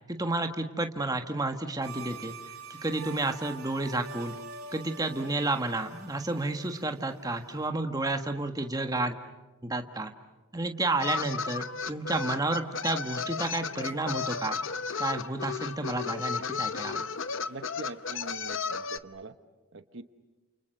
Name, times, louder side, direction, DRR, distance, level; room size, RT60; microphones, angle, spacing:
voice 1, 0.1-2.3 2.7-4.3 4.7-9.2 9.6-10.1 10.5-14.6 15.0-17.1, right 2 dB, 15° right, 6 dB, 1.5 m, -31 dB
sound 1, 1.8-7.7, right 4 dB, 75° right, 4.0 m, -45 dB
sound 2, 11.0-19.0, left 5 dB, 55° left, 0.8 m, -34 dB
voice 2, 17.5-19.3 19.7-20.0, right 3 dB, 55° right, 10 dB, 1.0 m, -43 dB
29.5 x 29.0 x 6.7 m, 1.2 s
head